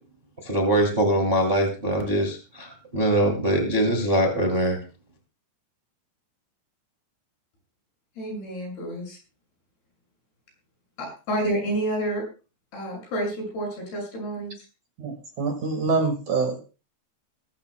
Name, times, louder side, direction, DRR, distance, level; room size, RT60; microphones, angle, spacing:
voice 1, 0.4-4.8, right 1 dB, 15° right, 2 dB, 2.0 m, -23 dB
voice 2, 8.2-9.2 11.0-12.2 12.7-14.7, right 1 dB, 65° left, 0 dB, 8.7 m, -29 dB
voice 3, 15.0-16.6, right 4 dB, 55° right, 4 dB, 2.8 m, -25 dB
21.0 x 13.5 x 2.2 m, 0.33 s
omnidirectional pair, 4.9 m